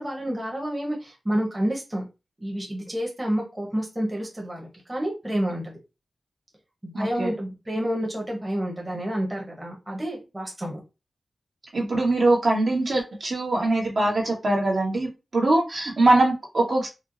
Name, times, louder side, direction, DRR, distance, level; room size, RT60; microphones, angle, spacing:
voice 1, 0.0-2.1 2.4-5.8 6.8-10.8, equal, 15° right, -2 dB, 0.9 m, -29 dB
voice 2, 6.9-7.3 11.7-16.9, right 2 dB, 55° right, -2 dB, 1.2 m, -22 dB
4.3 x 2.0 x 2.5 m, 0.27 s
wide cardioid pair, 110°, 0 cm